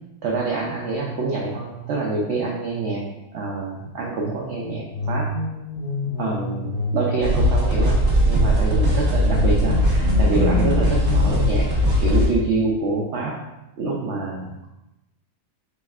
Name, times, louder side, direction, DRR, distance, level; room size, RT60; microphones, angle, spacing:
voice 1, 0.2-3.0 3.3-5.3 6.2-11.7 12.0-13.3 13.8-14.7, right 3 dB, 70° right, -3 dB, 0.6 m, -26 dB
sound 1, 4.9-8.0 9.2-12.1, left 2 dB, 80° left, 1.8 m, -28 dB
sound 2, 7.2-12.3, equal, 40° right, 1.0 m, -19 dB
5.0 x 3.1 x 2.3 m, 0.94 s
omnidirectional pair, 1.8 m